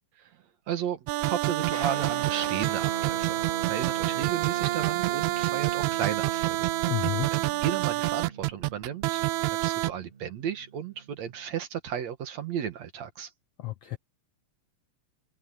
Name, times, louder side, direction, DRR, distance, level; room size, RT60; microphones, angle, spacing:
voice 1, 0.7-6.7 7.3-9.2 9.6-13.3, right 9 dB, 60° right, 2.4 m, -34 dB
sound 1, 1.1-9.9, right 19 dB, 80° right, 1.7 m, -28 dB
Guitar, 1.7-11.5, right 4 dB, 20° right, 2.1 m, -42 dB
voice 2, 6.9-7.3 13.6-14.0, left 17 dB, 75° left, 1.4 m, -31 dB
omnidirectional pair, 3.8 m